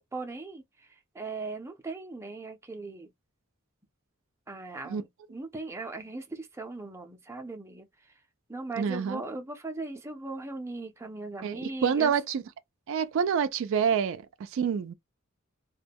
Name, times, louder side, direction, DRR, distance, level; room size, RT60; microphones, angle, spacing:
voice 1, 0.1-3.1 4.5-8.1 8.5-12.1, right 3 dB, 15° right, 0.5 m, -39 dB
voice 2, 8.8-9.2 11.4-12.4 12.9-14.9, right 7 dB, 65° right, 0.3 m, -27 dB
2.2 x 2.1 x 3.4 m
head